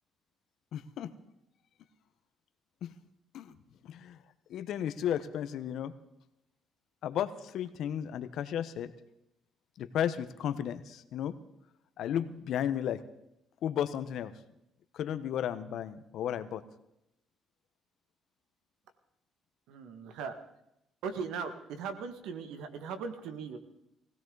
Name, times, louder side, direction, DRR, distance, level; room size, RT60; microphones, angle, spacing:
voice 1, 0.7-1.1 2.8-2.9 3.3-3.5 3.8-4.2 4.5-5.9 7.0-8.9 9.8-11.4 12.0-13.0 13.6-14.3 14.9-16.6, left 10 dB, 70° left, 12 dB, 1.0 m, -34 dB
voice 2, 19.7-20.3 21.0-23.6, right 5 dB, 85° right, 9 dB, 1.8 m, -38 dB
20.5 x 16.5 x 4.0 m, 0.84 s
cardioid pair, 110°, 0 cm